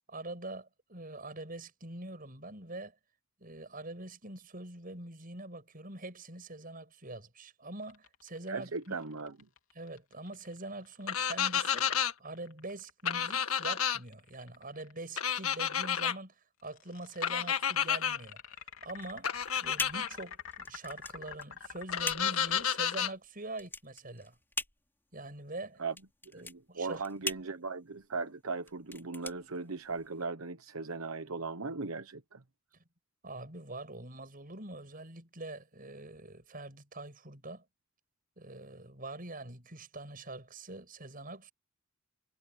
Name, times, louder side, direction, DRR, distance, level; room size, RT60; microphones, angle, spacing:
voice 1, 0.1-2.9 3.4-9.0 9.7-16.3 16.6-18.4 18.8-19.3 19.6-24.4 25.1-25.8 26.3-27.0 33.2-37.6 38.4-41.5, right 2 dB, 40° right, 8.0 m, -44 dB
sound 1, 7.8-15.1 16.6-22.7, left 6 dB, 70° left, 3.6 m, -48 dB
voice 2, 8.5-9.3 25.8-25.9 26.3-32.4, right 4 dB, 80° right, 1.1 m, -38 dB
sound 2, 11.1-12.1 13.1-14.0 15.2-16.1 17.2-18.2 19.2-20.1 21.9-23.1, left 8 dB, 85° left, 1.7 m, -30 dB
sound 3, 18.9-30.2, left 3 dB, 10° left, 4.5 m, -42 dB
head